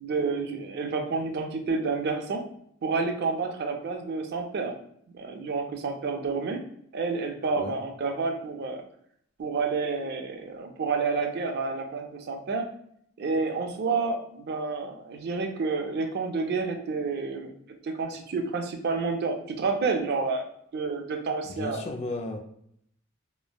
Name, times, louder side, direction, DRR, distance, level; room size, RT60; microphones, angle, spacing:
voice 1, 0.0-2.5 2.8-4.7 5.1-6.6 6.9-8.8 9.4-12.7 13.2-17.5 17.8-20.5 20.7-21.8, right 4 dB, 55° right, 4 dB, 0.4 m, -29 dB
voice 2, 21.5-22.4, left 2 dB, 35° left, 3 dB, 0.3 m, -34 dB
3.1 x 2.0 x 2.2 m, 0.68 s
head